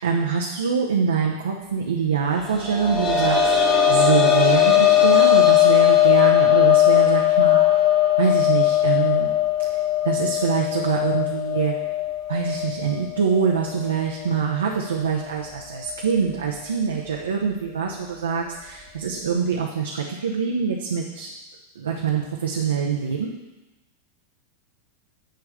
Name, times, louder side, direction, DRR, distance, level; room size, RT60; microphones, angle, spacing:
voice 1, 0.0-3.4 3.9-7.6 8.2-9.3 9.6-9.7 10.0-11.7 12.3-21.3 21.8-23.3, right 6 dB, 70° right, 0 dB, 0.8 m, -24 dB
sound 1, 2.4-13.9 14.2-14.3 15.9-16.0, left 11 dB, 25° left, 1.5 m, -19 dB
10.0 x 3.5 x 6.8 m, 1.0 s
figure-of-eight pair, 90°, 0 cm